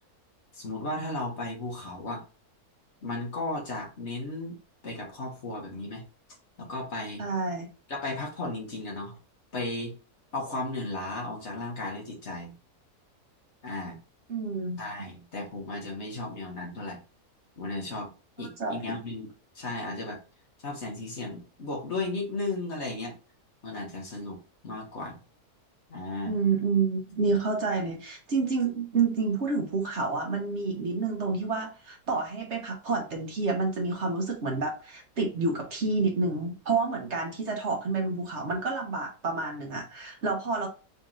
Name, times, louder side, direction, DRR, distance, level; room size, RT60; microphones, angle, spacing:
voice 1, 0.5-2.2 3.0-4.6 4.8-6.0 6.6-7.2 7.9-9.2 9.5-9.9 10.3-12.5 13.6-14.0 14.8-17.0 17.6-18.1 18.4-19.3 19.5-20.2 20.6-23.1 23.6-24.4 24.6-25.2 25.9-26.4, left 2 dB, 50° left, -1 dB, 1.5 m, -35 dB
voice 2, 7.2-7.7 14.3-14.8 18.4-18.8 26.2-40.7, right 4 dB, 50° right, 1 dB, 1.2 m, -29 dB
4.1 x 2.9 x 3.7 m, 0.32 s
omnidirectional pair, 1.6 m